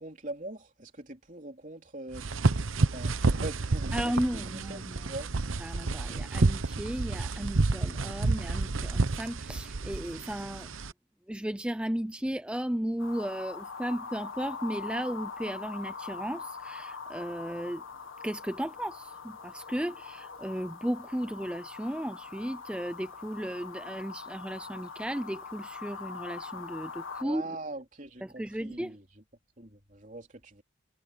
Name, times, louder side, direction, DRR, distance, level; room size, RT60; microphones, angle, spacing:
voice 1, 0.0-2.2 2.9-4.8 5.1-5.3 27.2-29.0 29.6-30.6, right 2 dB, 40° right, 3.7 m, -42 dB
sound 1, 2.1-10.9, right 3 dB, 80° right, 0.9 m, -29 dB
voice 2, 3.9-5.0 5.6-10.7 11.3-17.8 18.2-19.1 19.4-27.4 28.2-28.9, equal, 5° right, 0.4 m, -35 dB
sound 2, 13.0-27.2, left 5 dB, 80° left, 1.7 m, -42 dB
head